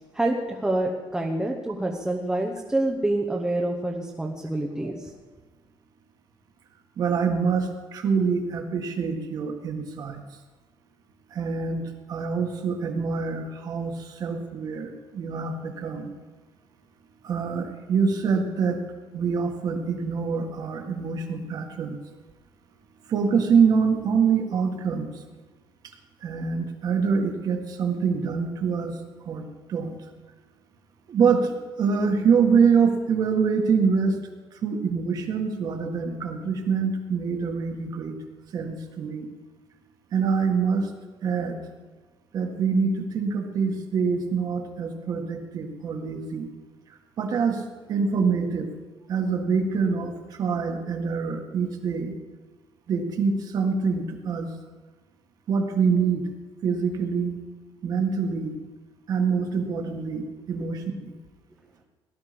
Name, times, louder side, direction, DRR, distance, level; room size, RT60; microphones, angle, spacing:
voice 1, 0.1-5.1, right 1 dB, 5° right, 1 dB, 1.0 m, -27 dB
voice 2, 7.0-10.2 11.3-16.1 17.2-18.8 19.1-22.0 23.1-25.2 26.2-29.0 29.3-30.0 31.1-34.2 34.6-38.1 38.5-39.3 40.1-40.9 41.2-41.6 42.3-46.5 47.2-47.6 47.9-48.7 49.1-50.1 50.4-52.1 52.9-54.5 55.5-56.3 56.6-57.4 57.8-58.6 59.1-61.1, right 5 dB, 45° right, 3 dB, 1.8 m, -25 dB
18.0 x 11.5 x 5.2 m, 1.3 s
cardioid pair, 165°, 9 cm